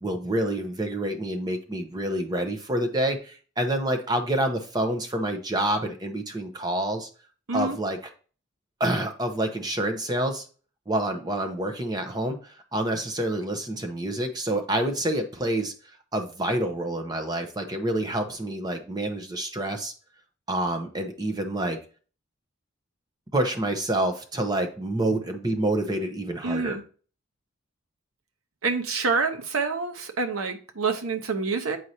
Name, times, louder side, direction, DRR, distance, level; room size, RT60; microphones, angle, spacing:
voice 1, 0.0-7.1 7.5-8.0 8.8-10.4 10.9-15.7 16.1-19.9 20.5-21.8 23.3-26.8, right 1 dB, 20° right, 5 dB, 0.8 m, -27 dB
voice 2, 26.4-26.8 28.6-31.8, right 4 dB, 85° right, 6 dB, 0.9 m, -27 dB
7.7 x 4.7 x 2.8 m, 0.39 s
head